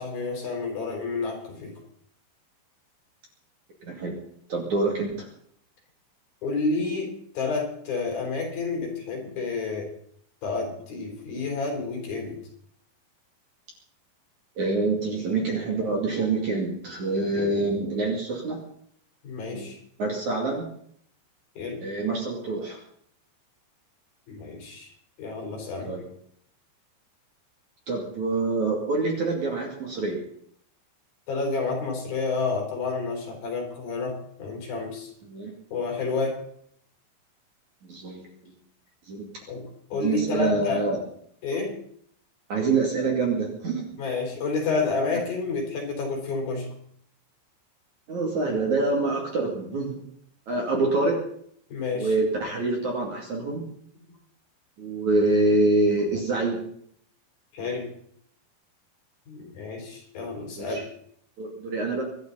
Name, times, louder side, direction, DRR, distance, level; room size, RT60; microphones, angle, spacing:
voice 1, 0.0-1.7 6.4-9.9 10.4-12.4 19.2-19.8 21.6-21.8 24.3-24.9 25.2-25.9 31.3-35.1 35.7-36.4 39.5-39.7 39.9-40.8 41.4-41.8 44.0-46.7 51.7-52.1 57.5-57.9 59.3-60.9, left 4 dB, 55° left, 1 dB, 5.6 m, -30 dB
voice 2, 3.8-4.2 4.5-5.3 14.6-18.6 19.5-19.7 20.0-20.6 21.8-22.8 25.9-26.0 27.9-30.2 35.3-35.5 37.8-38.5 39.1-39.3 39.9-41.0 42.5-43.8 45.1-45.2 48.1-50.0 50.5-51.2 51.9-53.6 54.8-56.6 59.4-59.5 60.6-60.8 61.4-62.0, right 3 dB, 45° right, 0 dB, 3.4 m, -26 dB
25.0 x 11.5 x 4.1 m, 0.65 s
omnidirectional pair, 5.4 m